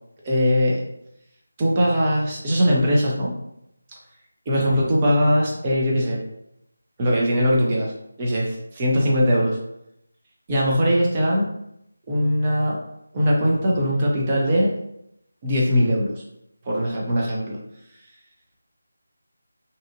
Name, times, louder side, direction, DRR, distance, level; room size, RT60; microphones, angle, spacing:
voice 1, 0.2-0.8 1.6-3.3 4.5-6.2 7.0-7.9 8.2-9.6 10.5-11.5 12.1-12.8 13.1-14.7 15.4-16.1 16.7-17.6, equal, 25° right, -3 dB, 0.6 m, -20 dB
2.7 x 2.4 x 2.6 m, 0.78 s
figure-of-eight pair, 160°, 0 cm